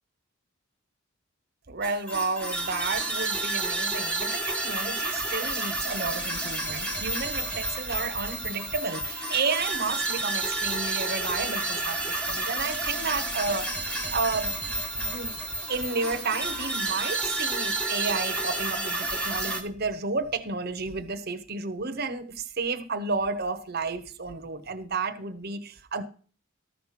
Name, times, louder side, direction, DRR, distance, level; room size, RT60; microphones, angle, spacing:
voice 1, 1.7-15.4 15.7-26.0, right 4 dB, 45° right, 1.1 m, -32 dB
sound 1, 1.8-19.6, right 2 dB, 5° left, 1.3 m, -30 dB
13.5 x 6.0 x 5.9 m
head